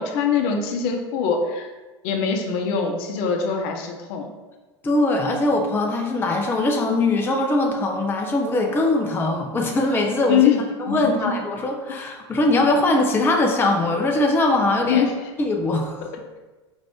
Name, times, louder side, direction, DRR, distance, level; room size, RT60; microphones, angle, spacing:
voice 1, 0.0-1.7 2.0-4.3 10.3-10.6 10.9-11.1 14.9-15.3, left 7 dB, 55° left, 3 dB, 0.6 m, -23 dB
voice 2, 4.8-10.5 10.8-15.1 15.4-16.1, left 2 dB, 15° left, 1 dB, 0.5 m, -21 dB
4.3 x 2.4 x 3.5 m, 1.2 s
hypercardioid pair, 95°, 15 cm